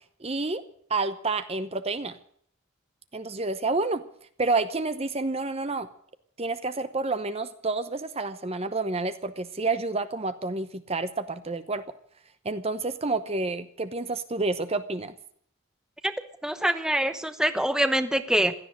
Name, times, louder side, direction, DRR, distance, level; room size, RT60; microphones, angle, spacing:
voice 1, 0.2-0.6 0.9-2.2 3.1-4.0 4.4-5.9 6.4-11.8 12.4-15.1, right 3 dB, 30° right, 11 dB, 0.9 m, -29 dB
voice 2, 16.4-18.5, right 1 dB, 5° right, 10 dB, 1.0 m, -24 dB
16.5 x 13.0 x 6.4 m, 0.62 s
head